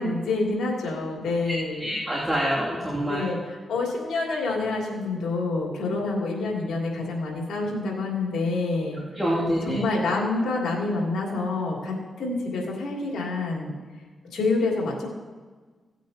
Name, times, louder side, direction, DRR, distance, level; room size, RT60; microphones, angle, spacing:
voice 1, 0.0-1.9 3.1-9.0 9.6-13.7 14.3-15.1, left 3 dB, 85° left, -3 dB, 2.8 m, -27 dB
voice 2, 1.8-3.2 9.2-9.8, equal, 10° right, -7 dB, 2.6 m, -26 dB
17.0 x 9.0 x 2.9 m, 1.4 s
cardioid pair, 70°, 0 cm